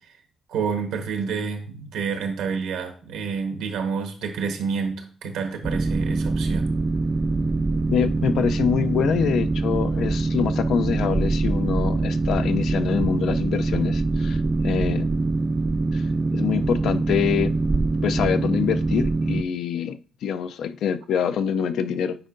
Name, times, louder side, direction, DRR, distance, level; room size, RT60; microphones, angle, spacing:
voice 1, 0.5-6.7, right 5 dB, 90° right, 1.1 m, -29 dB
Boat Water vehicle, 5.6-19.4, right 3 dB, 25° right, 0.3 m, -24 dB
voice 2, 7.9-15.2 15.9-16.1 16.3-17.5 18.0-22.2, left 8 dB, 75° left, 0.4 m, -25 dB
8.8 x 4.4 x 2.5 m
cardioid pair, 90°, 0 cm